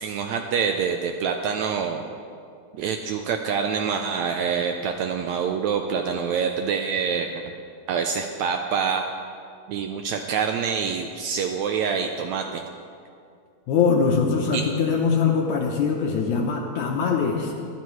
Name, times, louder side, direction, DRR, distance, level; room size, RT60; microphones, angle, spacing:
voice 1, 0.0-2.0 2.7-7.5 7.9-9.1 9.7-12.6 14.5-14.6, right 6 dB, 80° right, 4 dB, 1.8 m, -26 dB
voice 2, 13.7-17.5, left 5 dB, 75° left, 1 dB, 2.2 m, -22 dB
22.0 x 12.0 x 3.1 m, 2.4 s
omnidirectional pair, 3.6 m